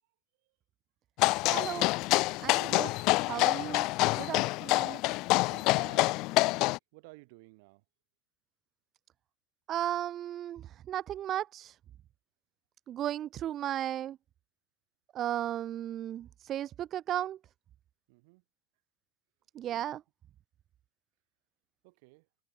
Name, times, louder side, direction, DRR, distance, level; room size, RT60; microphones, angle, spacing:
sound 1, 1.2-6.8, left 22 dB, 45° left, 0.3 m, -27 dB
voice 1, 1.5-1.9 2.4-2.9 3.3-3.9 4.2-5.0 9.7-11.7 12.9-14.2 15.1-17.4 19.6-20.0, right 11 dB, 35° right, 0.4 m, -35 dB
voice 2, 5.5-7.8 18.1-18.4 21.8-22.3, right 27 dB, 55° right, 5.4 m, -54 dB
figure-of-eight pair, 85°, 0 cm